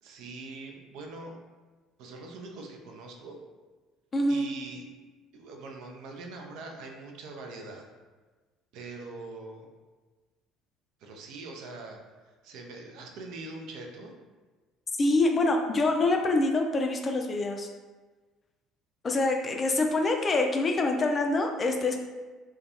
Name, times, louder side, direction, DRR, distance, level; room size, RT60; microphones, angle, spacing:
voice 1, 0.0-1.4 2.0-3.4 4.3-4.9 5.3-7.8 8.7-9.7 11.0-14.1, right 3 dB, 60° right, 2 dB, 0.4 m, -43 dB
voice 2, 4.1-4.5 15.0-17.7 19.0-22.0, left 2 dB, 35° left, 3 dB, 0.3 m, -25 dB
2.3 x 2.2 x 2.8 m, 1.3 s
figure-of-eight pair, 55°, 0 cm